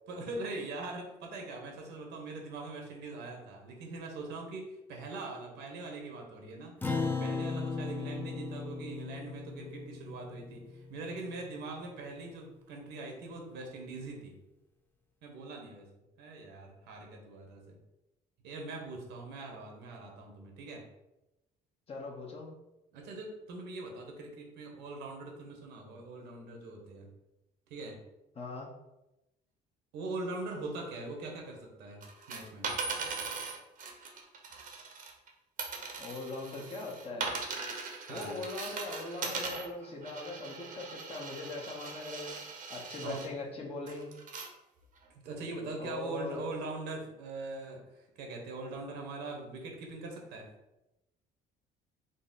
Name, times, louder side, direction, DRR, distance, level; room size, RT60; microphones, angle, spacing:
voice 1, 0.1-6.7 7.0-14.3 15.2-15.9 16.2-17.8 18.4-20.8 22.9-27.1 27.7-28.0 29.9-32.0 32.3-32.7 38.1-38.4 43.0-43.3 45.2-50.5, right 2 dB, 85° right, 1 dB, 1.0 m, -42 dB
Acoustic guitar, 6.8-11.5, left 4 dB, 10° left, 0.5 m, -37 dB
voice 2, 21.9-22.5 28.3-28.7 36.0-37.3 38.1-42.3 42.7-44.1 45.8-46.5, left 2 dB, 35° left, -2 dB, 0.9 m, -40 dB
sound 1, 32.0-35.3 35.6-43.3 43.9-44.5 45.0-45.1, right 4 dB, 55° right, 0.8 m, -40 dB
3.9 x 2.0 x 3.9 m, 0.95 s
cardioid pair, 110°, 17 cm